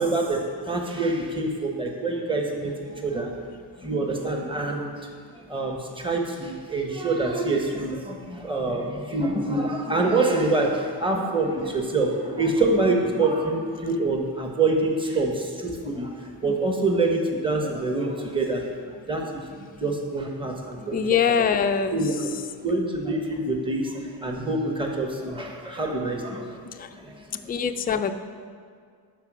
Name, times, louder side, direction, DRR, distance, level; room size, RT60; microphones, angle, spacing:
voice 1, 0.0-3.3 3.8-4.9 5.5-16.1 16.4-18.6 19.1-19.4 19.8-21.0 21.4-21.5 21.9-22.1 22.6-26.6 26.9-27.4, right 2 dB, 10° right, 1 dB, 1.1 m, -26 dB
voice 2, 19.5-20.0 20.9-22.1 26.7-26.9 27.5-28.1, left 7 dB, 20° left, 7 dB, 0.3 m, -25 dB
11.5 x 4.5 x 6.1 m, 2.1 s
wide cardioid pair, 125°, 46 cm